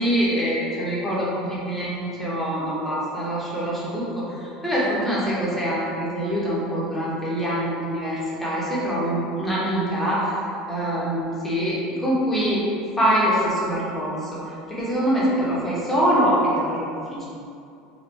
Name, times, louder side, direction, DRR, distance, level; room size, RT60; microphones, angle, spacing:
voice 1, 0.0-10.3 10.7-12.6 13.0-17.2, equal, 10° left, -8 dB, 1.3 m, -24 dB
4.0 x 2.6 x 4.6 m, 2.6 s
supercardioid pair, 125°, 2 cm